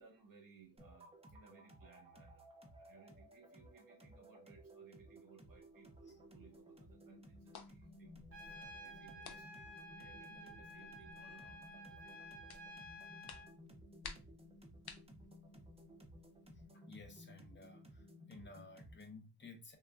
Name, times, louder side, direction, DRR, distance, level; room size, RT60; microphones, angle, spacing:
voice 1, 0.0-2.5 2.8-8.2 8.5-12.2, right 5 dB, 55° right, 0.8 m, -63 dB
sound 1, 0.8-19.2, equal, 15° right, 0.4 m, -58 dB
sound 2, 5.4-16.7, left 5 dB, 70° left, 0.5 m, -59 dB
Trumpet, 8.3-13.5, left 1 dB, 35° right, 1.7 m, -53 dB
voice 2, 16.7-19.8, left 3 dB, 30° left, 0.6 m, -55 dB
3.4 x 2.1 x 2.3 m
wide cardioid pair, 115°, 40 cm